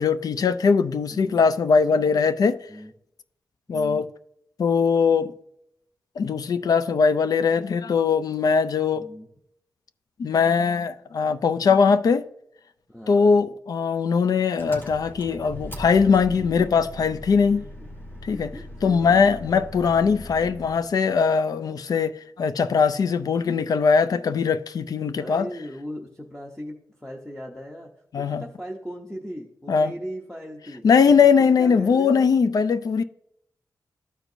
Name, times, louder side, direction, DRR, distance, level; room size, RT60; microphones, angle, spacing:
voice 1, 0.0-2.6 3.7-4.0 4.6-5.3 6.2-9.0 10.2-12.3 13.1-17.6 18.2-18.5 18.8-25.5 28.1-28.4 29.7-29.9 30.8-33.0, left 5 dB, 65° left, 0.4 m, -20 dB
voice 2, 1.1-1.4 2.7-2.9 3.7-4.0 8.9-9.3 11.0-11.1 11.5-11.7 12.9-13.4 18.3-19.2 25.1-27.9 28.2-30.9 31.2-32.2 32.6-32.7, equal, 5° left, 0.7 m, -38 dB
Engine, 14.6-20.9, left 1 dB, 30° left, 1.6 m, -40 dB
13.0 x 4.5 x 2.6 m
wide cardioid pair, 170°, 7 cm